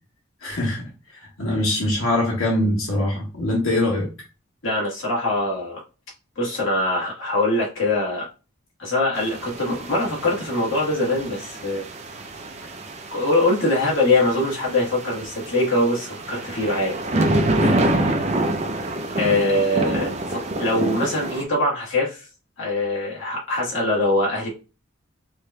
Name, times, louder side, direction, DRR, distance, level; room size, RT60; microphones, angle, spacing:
voice 1, 0.4-0.8 1.4-4.1 17.6-17.9, left 1 dB, 90° left, 1.4 m, -23 dB
voice 2, 4.6-5.8 6.4-8.3 8.8-11.9 13.1-17.0 19.2-22.3 22.6-24.5, left 2 dB, 70° left, 1.4 m, -23 dB
sound 1, 9.2-21.4, right 1 dB, 30° right, 0.5 m, -27 dB
4.8 x 2.7 x 2.2 m
head